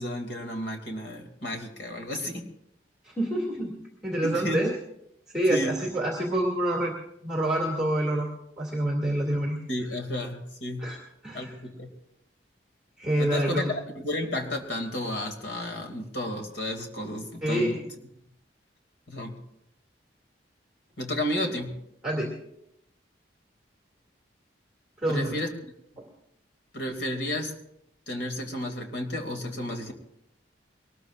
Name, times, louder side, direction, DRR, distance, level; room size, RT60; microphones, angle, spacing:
voice 1, 0.0-2.5 4.2-4.7 5.5-5.8 9.7-11.0 11.3-11.9 13.2-17.8 19.1-19.4 21.0-21.8 25.1-25.5 26.7-27.6 28.1-29.9, left 1 dB, 75° left, 3 dB, 2.5 m, -32 dB
voice 2, 3.0-3.7 4.0-4.7 5.3-6.9 7.2-8.3 8.6-9.6 10.8-11.0 11.2-11.5 13.0-13.7 17.4-17.7 22.0-22.3 25.0-25.4 26.0-26.1, right 1 dB, 5° right, -2 dB, 2.4 m, -27 dB
23.0 x 20.0 x 2.5 m, 0.78 s
head